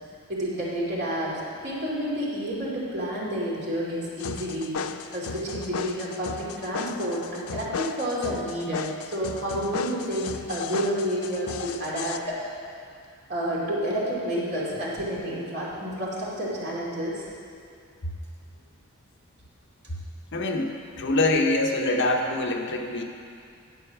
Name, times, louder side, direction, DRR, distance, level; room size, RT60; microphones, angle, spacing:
voice 1, 0.3-4.8 5.1-12.4 13.3-17.3, equal, 50° right, -6 dB, 2.6 m, -30 dB
sound 1, 4.2-12.2, left 6 dB, 90° left, 0.5 m, -35 dB
voice 2, 20.3-23.0, left 2 dB, 55° left, 2 dB, 0.9 m, -25 dB
10.0 x 7.9 x 6.0 m, 2.4 s
head